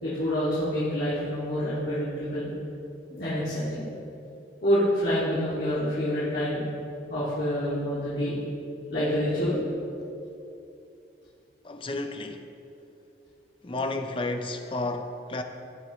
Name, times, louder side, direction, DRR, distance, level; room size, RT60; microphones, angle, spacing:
voice 1, 0.0-2.5 3.1-3.9 4.6-6.7 7.1-8.4 8.9-9.6, equal, 65° left, -11 dB, 2.4 m, -27 dB
voice 2, 11.6-12.4 13.6-15.4, left 2 dB, 30° left, 6 dB, 0.6 m, -32 dB
16.5 x 6.2 x 3.1 m, 2.7 s
head